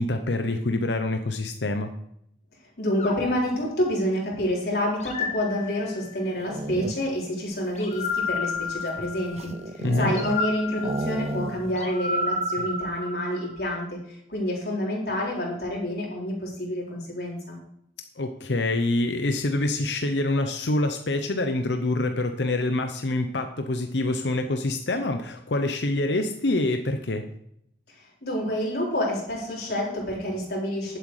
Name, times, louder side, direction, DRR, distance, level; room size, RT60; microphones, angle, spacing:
voice 1, 0.0-1.9 9.8-10.1 18.2-27.2, left 2 dB, 90° left, 6 dB, 0.8 m, -26 dB
voice 2, 2.8-9.5 9.8-17.6 28.2-31.0, left 1 dB, 65° left, -3 dB, 4.1 m, -28 dB
sound 1, 3.0-4.4 5.0-6.3 7.8-9.5 10.1-13.7, left 3 dB, 40° left, 1.3 m, -32 dB
sound 2, 6.2-7.3 7.9-10.5 10.8-11.9 12.1-12.2 12.5-12.9, right 2 dB, 35° right, 0.5 m, -33 dB
11.0 x 8.0 x 4.9 m, 0.74 s
head